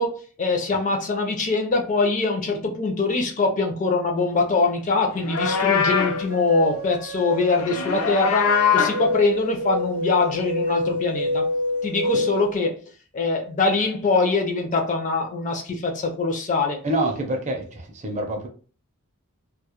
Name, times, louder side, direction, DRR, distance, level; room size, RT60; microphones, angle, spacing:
voice 1, 0.0-11.4 11.8-12.8 13.1-16.8, left 3 dB, 35° left, 0.4 m, -23 dB
Livestock farm animals working animals, 5.1-6.2 7.5-9.1, left 7 dB, 90° left, 0.5 m, -22 dB
sound 1, 5.4-12.5, left 1 dB, 75° right, 0.6 m, -28 dB
voice 2, 16.8-18.5, right 1 dB, 30° right, 0.5 m, -26 dB
2.2 x 2.0 x 2.9 m
head